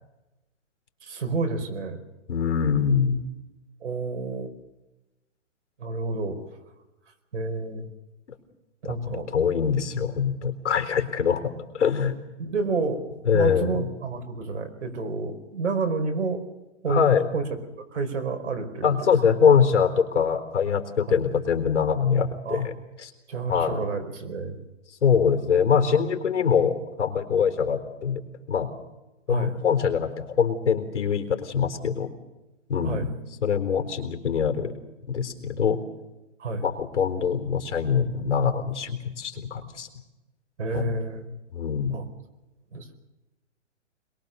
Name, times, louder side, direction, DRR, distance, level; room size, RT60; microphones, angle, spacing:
voice 1, 1.0-2.0 3.8-4.5 5.8-6.5 7.3-7.9 8.8-9.3 12.4-13.0 13.3-16.4 16.8-17.0 17.3-17.4 17.8-19.1 21.0-21.2 22.4-22.6 23.3-24.6 29.3-29.5 32.8-33.1 36.4-36.6 40.6-41.3 41.9-42.0 42.7-42.9, right 3 dB, 75° right, 6 dB, 5.0 m, -29 dB
voice 2, 2.3-3.2 8.8-12.1 13.2-13.9 16.9-17.3 18.8-22.7 23.0-23.1 23.5-23.8 24.9-28.2 28.5-28.7 29.3-32.1 32.7-33.1 33.4-34.7 35.1-35.8 36.6-39.9 40.7-40.9 41.5-42.0, left 7 dB, 70° left, 7 dB, 4.0 m, -23 dB
23.0 x 22.5 x 6.9 m, 1.0 s
hypercardioid pair, 160°, 36 cm